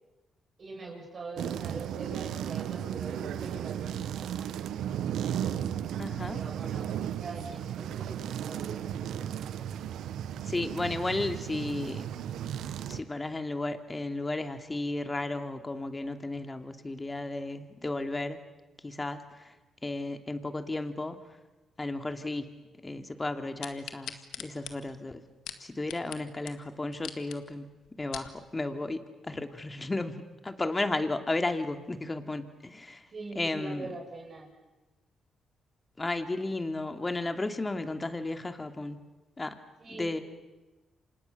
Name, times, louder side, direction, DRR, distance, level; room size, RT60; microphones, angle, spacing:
voice 1, 0.6-4.5 5.2-6.0 6.3-6.9 7.2-9.7 33.1-34.5 39.8-40.2, right 3 dB, 50° right, -1 dB, 7.7 m, -43 dB
sound 1, 1.4-13.0, right 10 dB, 80° right, 1.1 m, -35 dB
voice 2, 6.0-6.4 10.4-12.1 12.9-18.4 18.8-19.6 19.8-21.2 21.8-22.5 22.8-25.2 25.6-27.7 28.0-33.1 33.3-33.9 36.0-39.0 39.4-39.6 39.9-40.2, left 2 dB, 25° left, 7 dB, 2.7 m, -34 dB
sound 2, 23.6-26.2 26.5-26.6 26.9-27.4 27.9-28.3 28.9-29.0, left 10 dB, 80° left, 1.8 m, -41 dB
29.0 x 25.5 x 6.8 m, 1.1 s
supercardioid pair, 60°, 0 cm